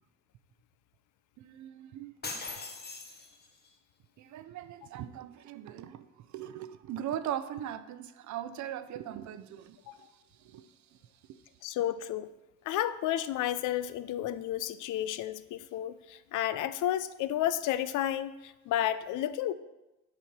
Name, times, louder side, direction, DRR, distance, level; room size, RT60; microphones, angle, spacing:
voice 1, 1.4-2.1 4.2-10.1 10.4-10.7 11.3-11.4, right 10 dB, 70° right, 0.5 m, -40 dB
sound 1, 2.2-3.7, left 4 dB, 35° left, 1.0 m, -41 dB
voice 2, 11.6-12.3 12.7-19.5, left 12 dB, 80° left, 0.5 m, -32 dB
7.2 x 4.3 x 6.0 m
cardioid pair, 90°, 30 cm